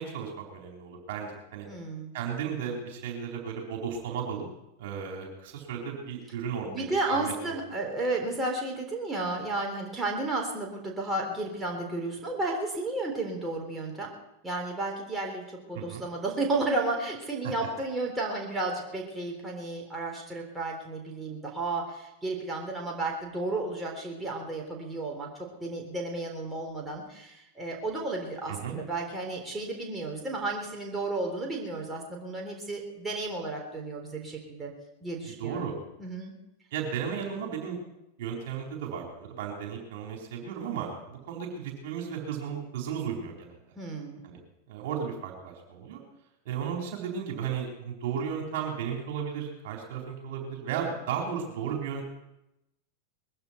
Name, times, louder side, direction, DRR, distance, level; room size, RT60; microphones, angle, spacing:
voice 1, 0.0-1.7 2.1-4.5 4.8-7.5 15.7-16.1 17.4-17.5 28.5-28.8 35.3-35.7 36.7-37.8 38.2-43.6 44.2-44.4 44.7-46.0 46.4-52.0, right 7 dB, 50° right, 0 dB, 4.2 m, -34 dB
voice 2, 1.7-2.1 6.6-14.1 14.4-25.3 25.6-34.7 35.0-35.7 36.0-36.3 43.8-44.3, right 2 dB, 10° right, -1 dB, 3.7 m, -33 dB
21.0 x 15.5 x 4.5 m, 0.90 s
figure-of-eight pair, 90°, 0 cm